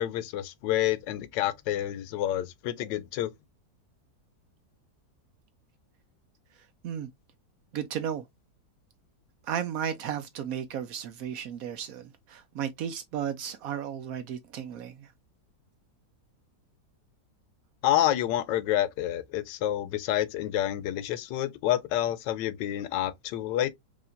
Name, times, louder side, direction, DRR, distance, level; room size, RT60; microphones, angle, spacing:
voice 1, 0.0-3.3 17.8-23.7, left 12 dB, 80° left, 1.2 m, -28 dB
voice 2, 7.7-8.3 9.4-15.1, right 9 dB, 70° right, 0.8 m, -34 dB
4.9 x 2.8 x 2.5 m
omnidirectional pair, 2.0 m